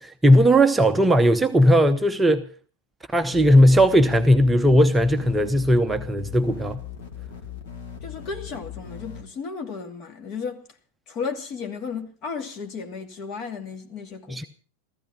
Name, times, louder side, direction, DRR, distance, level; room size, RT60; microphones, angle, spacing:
voice 1, 0.0-2.5 3.1-6.8 14.3-14.4, equal, 10° right, 0.8 m, -17 dB
sound 1, 3.3-9.2, left 8 dB, 55° left, 2.7 m, -38 dB
voice 2, 8.0-10.6 11.1-14.5, left 5 dB, 35° left, 2.5 m, -34 dB
15.0 x 14.5 x 5.8 m
figure-of-eight pair, 90°, 0 cm